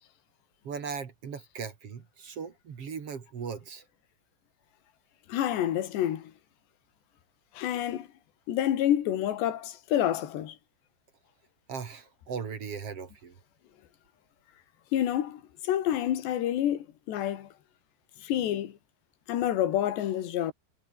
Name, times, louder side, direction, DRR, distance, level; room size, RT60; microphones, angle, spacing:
voice 1, 0.6-3.8 11.7-13.4, right 6 dB, 40° right, 2.6 m, -38 dB
voice 2, 5.3-6.3 7.6-8.1 8.5-10.6 14.9-17.5 18.2-18.7 19.3-20.5, left 11 dB, 80° left, 4.3 m, -28 dB
omnidirectional pair, 4.9 m